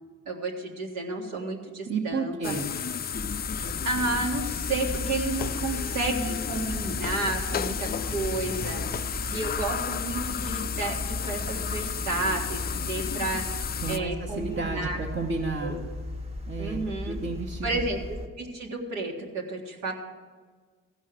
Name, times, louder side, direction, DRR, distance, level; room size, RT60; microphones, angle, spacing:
voice 1, 0.3-2.5 3.8-9.0 9.3-15.0 15.6-15.8 16.6-17.2 17.6-18.0 18.4-19.9, right 2 dB, 85° right, 0 dB, 1.8 m, -31 dB
voice 2, 1.9-2.7 13.8-15.8 16.5-16.8 17.0-17.8, right 4 dB, 45° right, -3 dB, 1.2 m, -32 dB
sound 1, 2.4-14.0, left 8 dB, 30° left, 0.4 m, -33 dB
sound 2, 3.1-18.3, left 1 dB, 20° right, 1.0 m, -36 dB
14.5 x 5.6 x 7.6 m, 1.5 s
cardioid pair, 90°, 30 cm